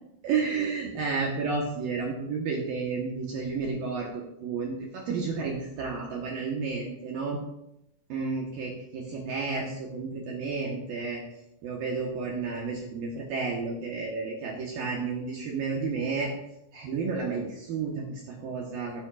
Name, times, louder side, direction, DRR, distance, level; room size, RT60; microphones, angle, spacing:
voice 1, 0.2-7.4 8.1-11.2 11.6-16.3 16.7-19.0, right 4 dB, 75° right, -1 dB, 2.1 m, -31 dB
16.5 x 10.5 x 2.5 m, 0.84 s
omnidirectional pair, 6.0 m